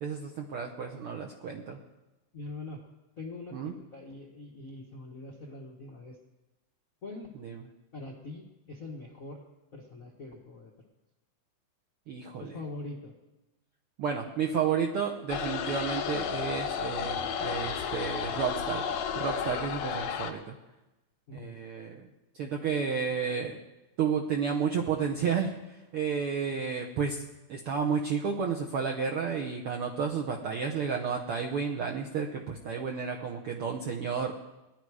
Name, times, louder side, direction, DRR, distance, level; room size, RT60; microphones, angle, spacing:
voice 1, 0.0-1.8 3.5-3.7 7.4-7.6 12.1-12.5 14.0-20.6 21.3-22.1 22.3-23.6 24.0-27.2 27.5-34.3, right 6 dB, 75° right, 1 dB, 1.3 m, -31 dB
voice 2, 2.3-2.8 3.2-6.2 7.0-7.3 7.9-9.4 9.7-10.7 12.4-13.1 21.3-21.5, left 2 dB, 55° left, 0 dB, 0.9 m, -43 dB
sound 1, 15.3-20.3, left 7 dB, 85° left, 2.6 m, -32 dB
19.0 x 11.0 x 4.8 m, 1.0 s
omnidirectional pair, 3.7 m